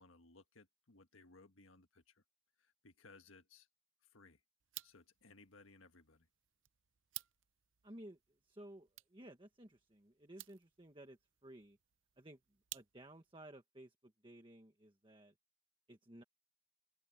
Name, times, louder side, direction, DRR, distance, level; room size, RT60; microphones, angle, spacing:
voice 1, 0.0-2.2 2.6-3.7 4.1-4.4 4.8-6.3, left 3 dB, 85° left, 1.6 m, -62 dB
sound 1, 4.6-13.3, right 17 dB, 70° right, 0.6 m, -56 dB
voice 2, 7.8-8.2 8.4-11.8 12.2-12.4 12.7-15.3 15.9-16.2, right 1 dB, 25° right, 1.5 m, -56 dB
open air
head